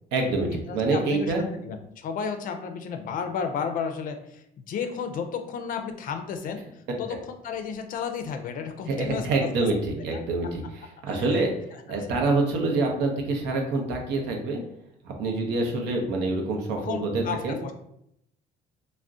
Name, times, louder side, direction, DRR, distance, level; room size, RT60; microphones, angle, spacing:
voice 1, 0.1-1.5 8.9-11.5 11.9-14.6 15.0-17.6, right 3 dB, 85° right, 2 dB, 0.6 m, -26 dB
voice 2, 0.7-1.3 1.6-6.6 7.0-7.2 7.4-9.7 10.1-10.2 11.1-11.4 11.9-12.0 16.7-17.7, left 6 dB, 55° left, 7 dB, 0.4 m, -33 dB
2.4 x 2.1 x 3.5 m, 0.76 s
cardioid pair, 110°, 17 cm